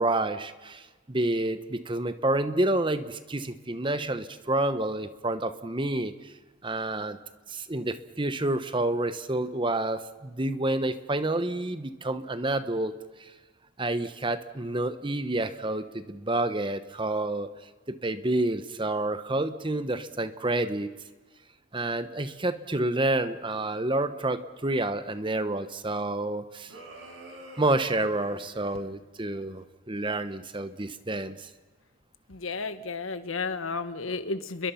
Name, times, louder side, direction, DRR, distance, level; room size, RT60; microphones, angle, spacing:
voice 1, 0.0-6.3 6.6-7.2 7.5-12.9 13.2-13.3 13.8-17.5 17.9-20.9 21.7-26.8 27.6-31.5, right 2 dB, 25° right, 11 dB, 1.0 m, -29 dB
sound 1, 26.7-28.8, right 2 dB, 75° right, 6.1 m, -46 dB
voice 2, 32.3-34.7, left 4 dB, 80° left, 11 dB, 1.5 m, -32 dB
30.0 x 22.0 x 5.8 m, 1.3 s
head